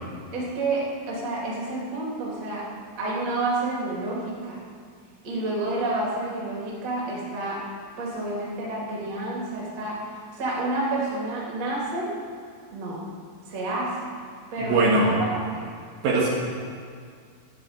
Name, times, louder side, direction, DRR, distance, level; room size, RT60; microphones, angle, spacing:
voice 1, 0.3-2.7 3.0-4.6 5.2-7.6 8.0-12.1 12.7-13.0 13.5-14.1 14.5-15.6, right 2 dB, 40° right, -5 dB, 3.4 m, -29 dB
voice 2, 14.6-15.1 16.0-16.3, right 2 dB, 70° right, -4 dB, 3.8 m, -20 dB
14.0 x 6.6 x 8.9 m, 2.1 s
omnidirectional pair, 5.5 m